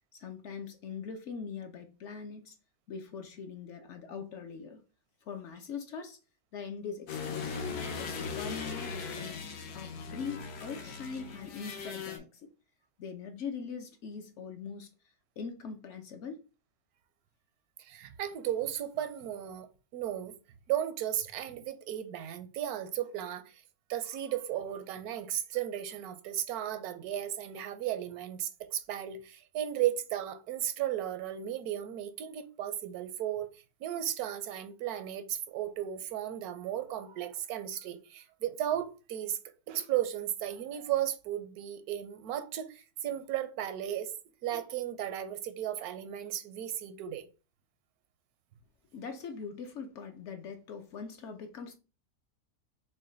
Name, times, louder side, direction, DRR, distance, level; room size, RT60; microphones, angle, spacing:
voice 1, 0.1-2.6 2.9-4.8 5.2-6.2 6.5-7.6 8.0-12.5 13.0-14.9 15.4-16.4 48.9-51.8, left 6 dB, 65° left, 0.8 m, -42 dB
sound 1, 7.1-12.2, left 5 dB, 85° left, 1.4 m, -39 dB
voice 2, 17.8-19.7 19.9-20.3 20.7-23.6 23.9-39.4 39.7-44.1 44.4-47.3, right 11 dB, 80° right, 1.1 m, -35 dB
6.2 x 2.2 x 3.8 m
omnidirectional pair, 1.6 m